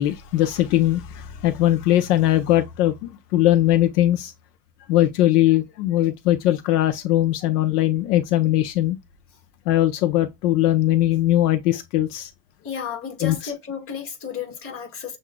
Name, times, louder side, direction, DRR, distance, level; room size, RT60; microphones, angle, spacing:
voice 1, 0.0-2.9 3.3-4.3 4.9-9.0 9.7-12.3 13.2-13.3, left 14 dB, 70° left, 0.8 m, -20 dB
voice 2, 12.6-15.2, left 7 dB, 25° left, 1.7 m, -32 dB
7.4 x 2.7 x 2.2 m
supercardioid pair, 170°, 48 cm